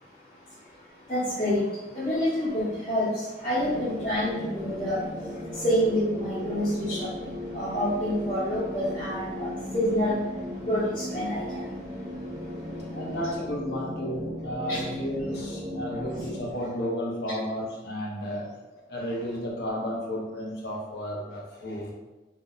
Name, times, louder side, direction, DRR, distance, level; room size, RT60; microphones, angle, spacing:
voice 1, 0.0-13.0 14.7-14.9, equal, 35° left, -13 dB, 1.1 m, -29 dB
sound 1, 3.6-16.5, left 1 dB, 35° right, 0.4 m, -36 dB
voice 2, 12.9-18.5 18.9-21.9, equal, 65° left, -3 dB, 0.7 m, -33 dB
2.7 x 2.1 x 3.8 m, 1.1 s
head